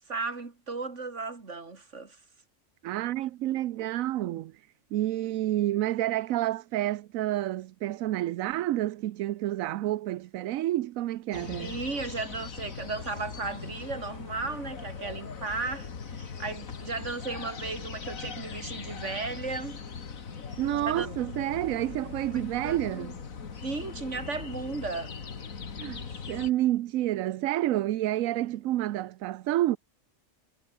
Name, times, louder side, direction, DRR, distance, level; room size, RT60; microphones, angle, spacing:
voice 1, 0.0-2.2 11.6-19.8 20.8-21.1 22.6-22.8 23.6-25.1, right 3 dB, 60° right, 3.1 m, -35 dB
voice 2, 2.8-11.7 20.6-23.2 25.8-29.8, right 14 dB, 85° right, 1.0 m, -29 dB
sound 1, 11.3-26.5, left 6 dB, 85° left, 2.2 m, -40 dB
omnidirectional pair, 1.4 m